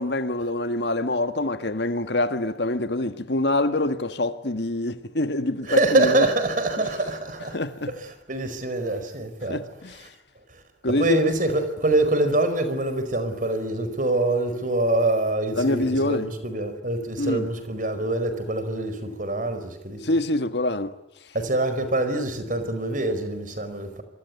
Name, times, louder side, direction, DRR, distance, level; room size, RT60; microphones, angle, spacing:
voice 1, 0.0-6.3 7.5-7.9 9.5-10.1 10.8-11.2 15.5-16.3 17.2-17.5 20.0-21.0, left 2 dB, 75° left, 1.7 m, -25 dB
voice 2, 5.6-7.6 7.9-9.6 10.5-10.6 11.0-20.0 21.3-24.0, right 2 dB, 50° right, 4.8 m, -25 dB
26.5 x 23.5 x 9.6 m
head